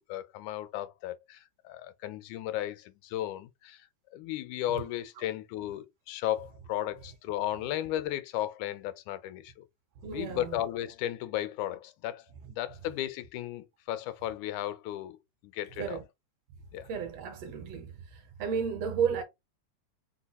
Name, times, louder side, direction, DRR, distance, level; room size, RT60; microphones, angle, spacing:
voice 1, 0.0-9.6 10.1-15.2 15.4-16.0 16.7-16.9, left 13 dB, 90° left, 2.1 m, -35 dB
voice 2, 10.0-10.6 15.8-16.0 16.9-17.9 18.4-19.2, right 7 dB, 70° right, 1.7 m, -32 dB
4.6 x 2.2 x 4.0 m
omnidirectional pair, 3.4 m